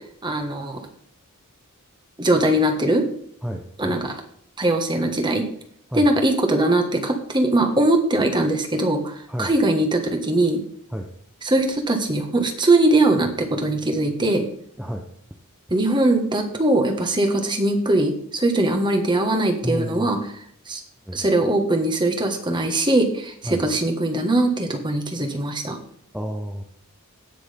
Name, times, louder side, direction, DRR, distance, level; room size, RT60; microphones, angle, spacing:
voice 1, 0.2-0.8 2.2-3.0 3.8-4.2 4.6-5.4 5.9-10.6 11.4-14.4 15.7-20.2 20.7-20.8 21.1-25.8, right 1 dB, 20° right, 4 dB, 1.4 m, -21 dB
voice 2, 19.6-20.1 21.1-21.2 23.4-23.7 26.1-26.6, equal, 5° right, 2 dB, 0.7 m, -30 dB
17.5 x 6.2 x 3.5 m, 0.64 s
head